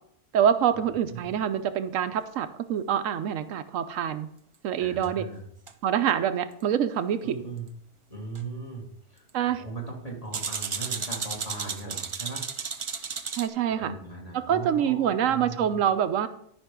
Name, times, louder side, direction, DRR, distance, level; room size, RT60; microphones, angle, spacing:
voice 1, 0.3-4.3 4.6-5.3 5.8-7.4 9.3-9.6 13.4-13.9 14.3-16.3, right 9 dB, 85° right, 10 dB, 1.0 m, -26 dB
voice 2, 4.8-5.4 7.2-7.7 8.1-9.2 9.6-12.5 13.6-15.8, right 3 dB, 30° left, -1 dB, 2.0 m, -38 dB
sound 1, 5.0-5.1 5.7-5.8 8.4-8.5 10.3-13.5, right 5 dB, 50° right, 0.3 m, -33 dB
12.0 x 5.5 x 3.7 m, 0.69 s
omnidirectional pair, 1.3 m